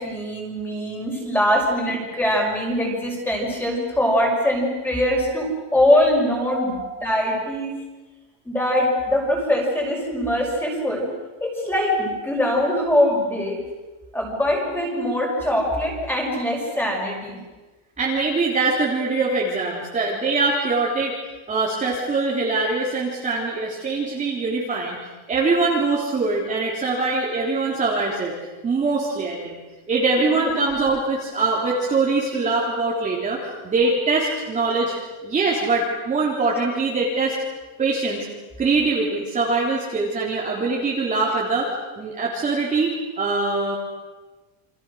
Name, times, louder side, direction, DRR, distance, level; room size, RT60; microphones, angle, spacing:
voice 1, 0.0-7.8 8.5-11.1 11.4-13.6 14.1-17.4 30.2-30.5, left 1 dB, 5° left, 0 dB, 5.7 m, -22 dB
voice 2, 18.0-21.2 21.5-25.0 25.3-28.3 28.6-29.6 29.9-35.0 35.2-37.4 37.8-38.3 38.6-41.7 42.0-42.9 43.2-43.8, right 3 dB, 15° right, -4 dB, 3.7 m, -23 dB
29.5 x 26.5 x 6.5 m, 1.2 s
cardioid pair, 175°, 41 cm